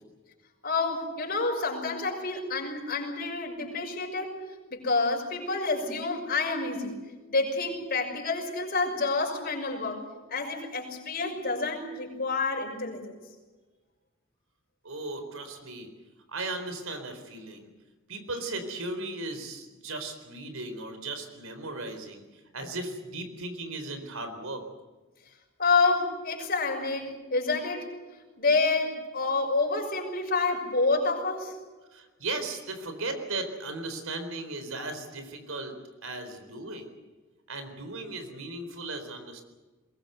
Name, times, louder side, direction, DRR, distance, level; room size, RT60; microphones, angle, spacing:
voice 1, 0.6-4.4 4.7-7.0 7.3-10.0 10.3-13.2 25.6-27.9 28.4-31.5, left 3 dB, 45° left, 2 dB, 6.2 m, -28 dB
voice 2, 14.8-15.9 16.3-17.7 18.1-22.2 22.5-24.6 31.9-35.8 36.0-36.9 37.5-39.4, right 2 dB, 80° right, 8 dB, 4.1 m, -36 dB
22.0 x 21.5 x 8.0 m, 1.2 s
head